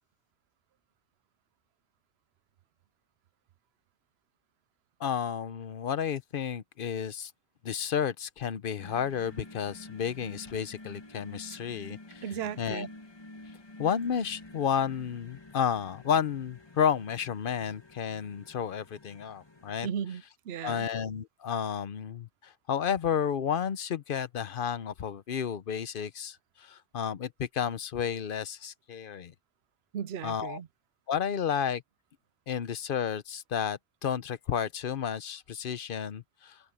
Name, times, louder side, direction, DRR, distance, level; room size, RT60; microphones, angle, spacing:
voice 1, 5.0-7.3 7.6-12.2 12.6-12.9 13.8-19.9 20.6-29.3 30.2-30.6 31.1-31.8 32.5-36.6, left 8 dB, 60° left, 0.8 m, -32 dB
sound 1, 8.8-19.8, left 2 dB, 25° left, 1.5 m, -50 dB
voice 2, 12.2-12.9 19.8-20.9 29.9-30.7, right 8 dB, 85° right, 0.9 m, -36 dB
omnidirectional pair, 1.0 m